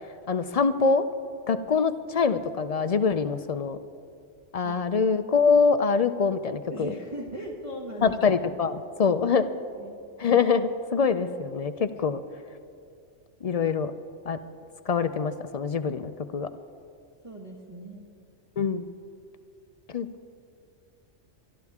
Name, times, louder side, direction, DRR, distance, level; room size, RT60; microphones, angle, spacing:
voice 1, 0.3-1.0 1.5-3.8 4.5-6.9 8.0-9.4 10.2-12.2 13.4-13.9 14.3-14.4 14.9-16.5 18.6-18.9 19.9-20.1, left 5 dB, 60° left, 11 dB, 0.4 m, -24 dB
voice 2, 6.7-8.1 9.7-10.0 17.2-18.1, equal, 25° right, -3 dB, 1.4 m, -38 dB
23.5 x 12.5 x 3.6 m, 2.4 s
omnidirectional pair, 1.3 m